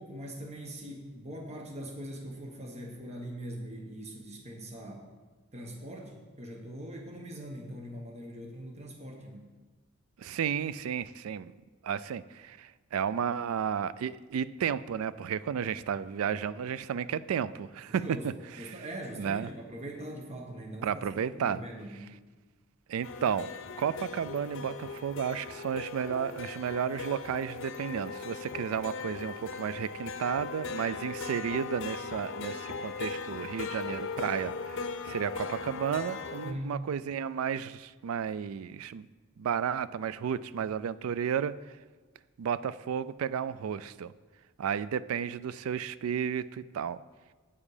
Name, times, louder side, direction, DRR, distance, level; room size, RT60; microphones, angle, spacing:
voice 1, 0.0-5.0 5.5-9.5 17.9-18.3 18.6-22.0 36.4-36.9, right 1 dB, 30° right, 1 dB, 1.2 m, -42 dB
voice 2, 10.2-11.5 11.8-18.3 18.6-18.7 19.2-19.5 20.8-21.6 22.9-23.5 23.8-39.1 39.4-41.5 42.4-44.1 44.6-47.0, right 7 dB, 90° right, 16 dB, 0.3 m, -32 dB
sound 1, 23.0-36.5, left 4 dB, 65° left, 0.6 m, -39 dB
8.5 x 7.3 x 4.9 m, 1.3 s
head